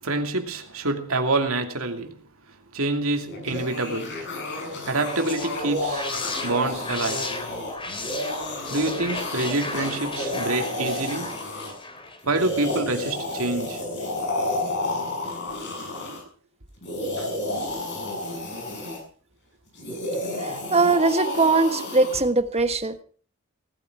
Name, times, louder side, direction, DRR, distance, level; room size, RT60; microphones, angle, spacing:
voice 1, 0.0-2.2 2.7-4.2 4.8-7.3 8.7-11.4 12.3-13.8 16.1-16.2 17.2-17.4, right 2 dB, 70° right, 2.7 m, -27 dB
sound 1, 3.2-11.7 12.2-16.2 16.8-19.0 19.8-22.2, left 1 dB, 55° left, 7.3 m, -31 dB
sound 2, 4.8-12.9, left 2 dB, 25° left, 3.3 m, -35 dB
voice 2, 20.4-23.0, right 3 dB, 30° right, 1.4 m, -21 dB
18.5 x 13.5 x 4.9 m
head